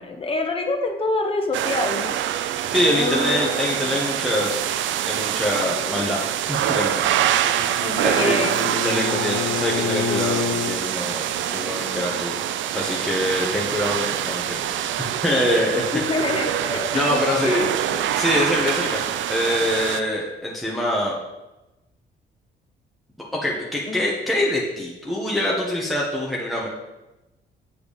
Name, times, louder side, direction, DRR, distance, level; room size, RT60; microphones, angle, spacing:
voice 1, 0.0-2.2 2.9-3.5 5.7-6.0 7.8-8.6 15.9-17.7 23.9-24.1, left 2 dB, 30° left, 3 dB, 1.3 m, -27 dB
sound 1, 1.5-20.0, right 11 dB, 75° right, 0.5 m, -25 dB
voice 2, 2.7-4.6 5.1-6.2 6.5-7.0 8.0-12.4 12.7-16.0 16.9-17.7 18.1-21.2 23.4-26.7, left 1 dB, ahead, -4 dB, 1.5 m, -24 dB
Bowed string instrument, 7.1-10.8, left 7 dB, 50° left, 0.5 m, -29 dB
8.5 x 4.7 x 5.3 m, 1.0 s
cardioid pair, 90°, 20 cm